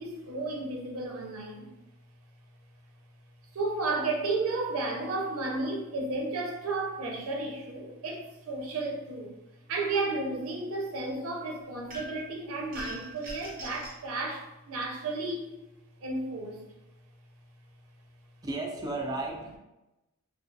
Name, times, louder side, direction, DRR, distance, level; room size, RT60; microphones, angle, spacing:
voice 1, 0.0-1.7 3.5-9.3 9.7-15.5 16.0-16.6, right 3 dB, 80° right, 0 dB, 0.5 m, -33 dB
sound 1, 11.9-12.3 12.7-14.0, right 1 dB, 40° right, 0.7 m, -42 dB
voice 2, 18.4-19.6, right 2 dB, 15° right, 0 dB, 0.3 m, -34 dB
2.3 x 2.3 x 2.6 m, 0.98 s
head